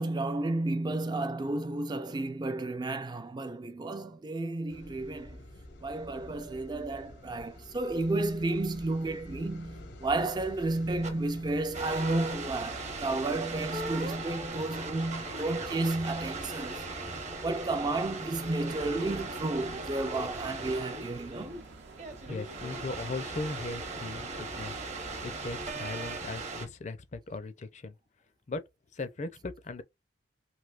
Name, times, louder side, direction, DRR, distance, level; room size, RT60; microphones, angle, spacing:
voice 1, 0.0-5.4 5.8-16.9 17.4-21.6, right 2 dB, 25° right, 0.4 m, -32 dB
sound 1, 4.7-20.7, left 1 dB, 75° left, 0.8 m, -49 dB
sound 2, 11.0-11.1 11.7-26.7, right 3 dB, 40° right, 0.8 m, -38 dB
sound 3, 18.5-25.6, right 3 dB, 70° right, 0.7 m, -50 dB
voice 2, 22.2-24.7 25.2-27.9 28.5-28.6 28.9-29.8, left 3 dB, 40° left, 0.5 m, -38 dB
3.3 x 2.7 x 2.4 m
head